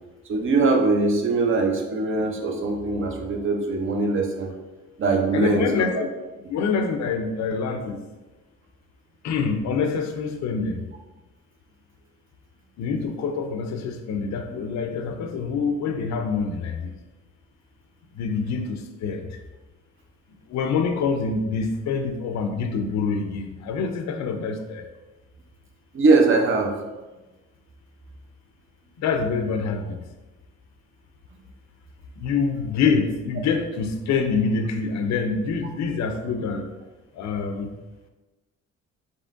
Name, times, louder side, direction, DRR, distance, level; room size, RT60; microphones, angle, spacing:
voice 1, 0.3-4.5 5.0-6.0 25.9-26.8, right 3 dB, 40° right, 2 dB, 0.7 m, -21 dB
voice 2, 5.3-6.1 6.5-8.0 9.2-10.9 12.8-17.0 18.2-19.3 20.5-24.9 29.0-30.0 32.2-36.7 37.1-37.7, left 5 dB, 65° left, 6 dB, 0.5 m, -26 dB
4.0 x 3.6 x 2.5 m, 1.1 s
cardioid pair, 90°, 30 cm